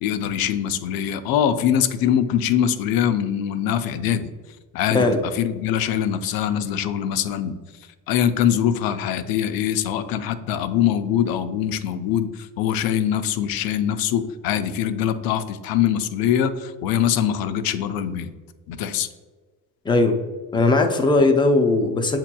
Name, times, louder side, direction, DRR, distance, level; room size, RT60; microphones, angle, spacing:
voice 1, 0.0-4.3 4.7-7.6 8.1-18.3 18.7-19.1, left 9 dB, 65° left, 10 dB, 0.5 m, -23 dB
voice 2, 19.8-20.2 20.5-22.2, left 2 dB, 10° left, 5 dB, 0.4 m, -18 dB
7.4 x 2.9 x 2.2 m, 1.4 s
cardioid pair, 115°, 40 cm